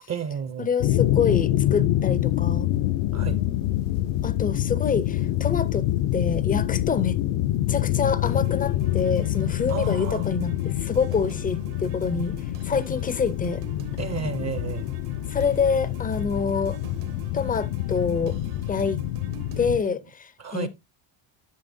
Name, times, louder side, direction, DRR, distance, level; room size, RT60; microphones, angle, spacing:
voice 1, 0.1-0.7 3.1-3.4 9.7-10.3 14.0-14.9 20.4-20.7, right 7 dB, 35° right, 0.5 m, -32 dB
voice 2, 0.6-2.7 4.2-5.8 6.1-7.2 7.7-12.4 12.6-13.6 15.3-16.8 17.3-18.4 18.7-19.0 19.6-20.7, left 5 dB, 20° left, 0.4 m, -26 dB
Countryside Bushes Rustling Plane Flies Overhead, 0.8-19.8, left 14 dB, 70° left, 0.6 m, -26 dB
sound 1, 8.3-19.7, right 8 dB, 90° right, 1.9 m, -46 dB
11.5 x 6.6 x 2.6 m
cardioid pair, 155°, 50 cm